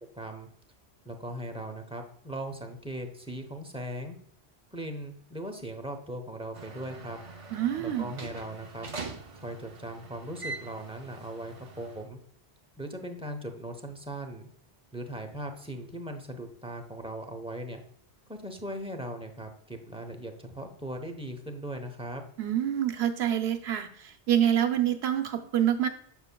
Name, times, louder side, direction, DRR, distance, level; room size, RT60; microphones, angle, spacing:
voice 1, 0.1-0.5 1.0-4.2 4.7-7.2 7.8-8.9 9.4-12.2 12.8-14.5 14.9-17.8 18.3-22.2, right 1 dB, 5° right, 4 dB, 0.7 m, -39 dB
sound 1, 6.5-12.1, right 3 dB, 40° right, 0.6 m, -43 dB
voice 2, 7.5-8.1 22.4-25.9, right 10 dB, 75° right, 7 dB, 1.0 m, -27 dB
7.0 x 7.0 x 2.2 m, 0.64 s
omnidirectional pair, 1.1 m